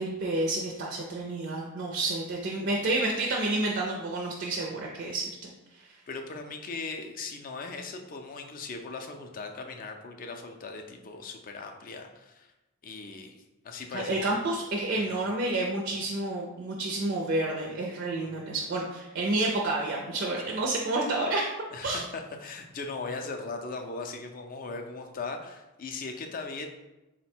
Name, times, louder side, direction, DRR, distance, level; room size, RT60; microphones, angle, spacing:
voice 1, 0.0-6.0 13.9-21.5 21.8-22.0, right 2 dB, 50° right, -1 dB, 0.4 m, -30 dB
voice 2, 6.1-12.5 12.8-14.3 14.9-15.2 18.1-18.4 21.7-26.7, left 3 dB, 40° left, 4 dB, 0.4 m, -39 dB
3.8 x 2.1 x 4.3 m, 1.0 s
head